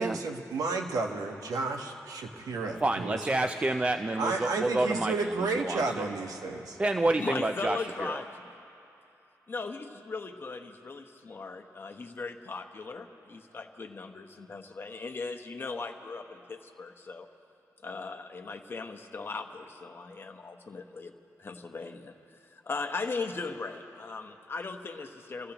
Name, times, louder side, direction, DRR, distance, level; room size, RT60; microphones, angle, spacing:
voice 1, 0.0-3.5 4.2-6.8, right 3 dB, 85° right, 3 dB, 1.2 m, -32 dB
voice 2, 2.8-6.1 6.8-8.2, right 2 dB, 20° right, 7 dB, 0.4 m, -29 dB
voice 3, 7.2-8.6 9.5-17.3 17.8-25.5, left 4 dB, 40° left, 6 dB, 1.0 m, -38 dB
29.5 x 15.0 x 3.0 m, 2.8 s
cardioid pair, 100°, 6 cm